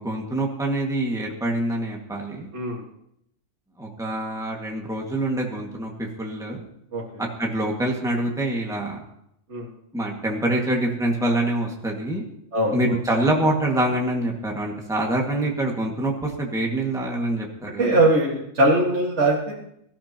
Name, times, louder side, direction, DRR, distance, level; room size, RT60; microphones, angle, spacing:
voice 1, 0.0-2.5 3.8-6.6 7.2-9.0 9.9-12.2 12.7-18.1, right 1 dB, ahead, -1 dB, 1.9 m, -25 dB
voice 2, 12.5-13.0 17.8-19.5, right 2 dB, 55° right, -5 dB, 2.2 m, -21 dB
23.0 x 13.5 x 3.0 m, 0.77 s
omnidirectional pair, 1.4 m